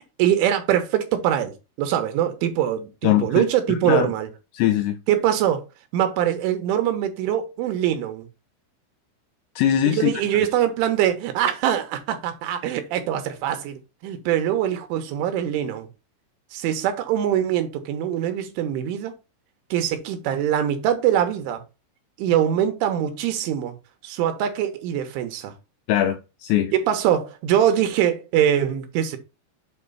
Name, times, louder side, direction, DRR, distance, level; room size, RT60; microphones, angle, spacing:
voice 1, 0.2-4.3 5.1-5.6 5.9-8.3 9.9-15.9 16.5-19.1 19.7-21.6 22.2-23.8 24.0-25.5 26.7-29.2, right 10 dB, 80° right, 3.4 m, -23 dB
voice 2, 3.0-3.4 3.7-4.1 4.5-5.0 9.6-10.1 25.9-26.7, left 11 dB, 85° left, 2.5 m, -21 dB
8.0 x 3.0 x 5.5 m
omnidirectional pair, 5.6 m